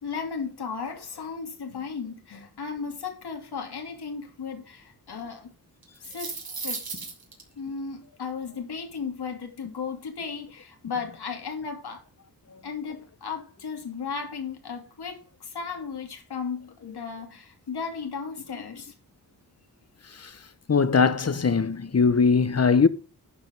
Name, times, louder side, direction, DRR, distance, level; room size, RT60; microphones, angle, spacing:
voice 1, 0.0-5.5 6.0-6.4 6.6-6.8 7.6-12.0 12.6-18.9, left 5 dB, 90° left, 2.6 m, -35 dB
sound 1, 5.8-7.4, right 4 dB, 65° right, 3.4 m, -35 dB
voice 2, 20.7-22.9, left 5 dB, 40° left, 1.0 m, -20 dB
11.0 x 5.2 x 5.2 m
wide cardioid pair, 75°, 38 cm